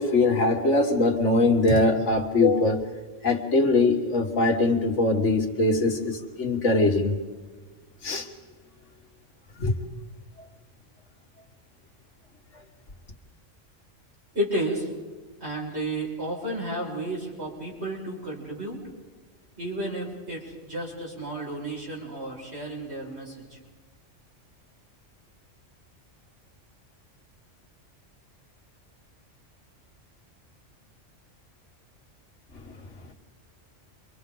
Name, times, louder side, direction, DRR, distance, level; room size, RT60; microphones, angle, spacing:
voice 1, 0.0-2.9 3.2-7.2 8.0-8.3 9.6-9.8, left 2 dB, 75° left, 2.0 m, -22 dB
voice 2, 14.3-14.9 15.4-18.8 19.6-23.6, right 1 dB, 60° right, 6.2 m, -32 dB
29.0 x 24.5 x 3.9 m
omnidirectional pair, 1.3 m